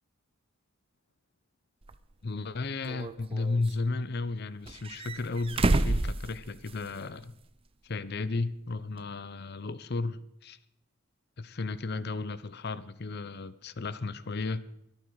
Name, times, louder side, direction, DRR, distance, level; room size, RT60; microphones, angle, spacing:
sound 1, 1.9-2.0 2.8-3.7 4.6-7.0 7.3-7.4 9.0-9.1, right 2 dB, 25° right, 0.5 m, -29 dB
voice 1, 2.2-7.3 7.8-10.6 11.4-14.6, left 3 dB, 50° left, 0.6 m, -34 dB
23.0 x 8.9 x 4.8 m
head